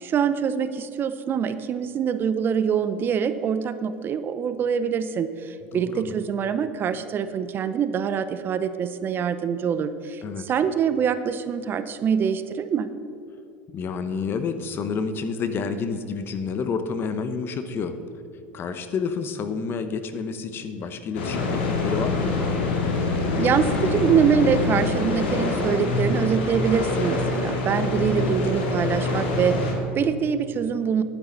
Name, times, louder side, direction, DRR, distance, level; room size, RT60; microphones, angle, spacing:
voice 1, 0.0-12.9 23.4-31.0, right 7 dB, 40° right, 12 dB, 0.6 m, -24 dB
voice 2, 5.7-6.1 10.2-10.5 13.7-18.0 18.5-22.4 27.8-28.4, left 5 dB, 40° left, 9 dB, 0.9 m, -29 dB
sound 1, 21.1-29.7, left 3 dB, 85° left, 2.1 m, -25 dB
10.5 x 9.7 x 4.0 m, 2.7 s
hypercardioid pair, 90°, 6 cm